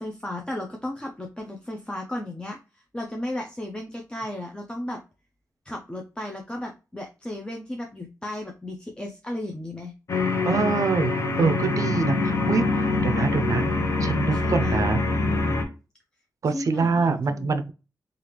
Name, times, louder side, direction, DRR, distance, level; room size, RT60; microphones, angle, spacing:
voice 1, 0.0-5.0 5.7-9.9 14.3-14.8 16.5-17.6, left 1 dB, 15° left, 1 dB, 0.5 m, -34 dB
sound 1, 10.1-15.6, left 3 dB, 50° left, 0.8 m, -24 dB
voice 2, 10.4-13.6 14.0-15.0 16.4-17.7, right 4 dB, 55° right, 9 dB, 0.5 m, -25 dB
3.3 x 2.4 x 2.9 m, 0.31 s
cardioid pair, 90°, 7 cm